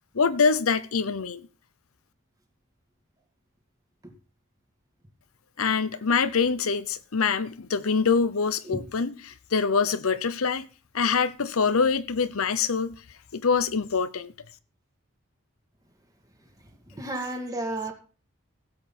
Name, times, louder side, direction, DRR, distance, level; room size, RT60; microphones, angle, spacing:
voice 1, 0.1-1.5 5.6-10.7 10.9-13.0 13.3-14.3, left 5 dB, 75° left, 0.8 m, -25 dB
voice 2, 16.9-17.9, right 1 dB, 15° right, 2.0 m, -32 dB
16.0 x 7.7 x 4.2 m
head